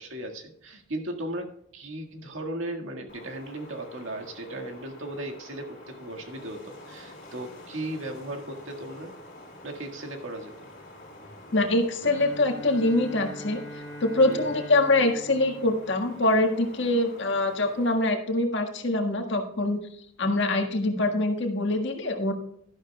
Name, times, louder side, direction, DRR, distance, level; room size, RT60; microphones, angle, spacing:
voice 1, 0.0-9.1 9.6-10.7 14.2-14.5 20.2-20.4, right 1 dB, 80° right, 3 dB, 1.8 m, -37 dB
Wind, 3.1-17.9, left 1 dB, 45° left, 3.8 m, -48 dB
voice 2, 11.5-13.6 14.0-19.8 20.2-22.3, left 2 dB, 65° left, 4 dB, 1.6 m, -24 dB
Bowed string instrument, 12.0-16.9, equal, 20° left, 3.8 m, -42 dB
12.0 x 11.5 x 2.3 m, 0.72 s
head